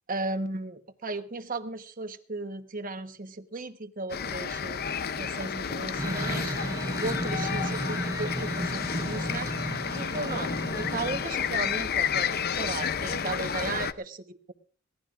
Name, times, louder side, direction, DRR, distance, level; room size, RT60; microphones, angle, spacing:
voice 1, 0.1-6.6 7.0-14.5, right 3 dB, 45° right, 9 dB, 1.1 m, -36 dB
sound 1, 4.1-13.9, left 7 dB, 50° left, 0.6 m, -31 dB
sound 2, 5.4-5.7 7.4-7.8 9.4-9.6 11.4-11.7, right 2 dB, 80° right, 2.8 m, -46 dB
sound 3, 6.0-11.2, right 1 dB, 15° right, 0.6 m, -34 dB
23.0 x 17.0 x 2.5 m, 0.41 s
head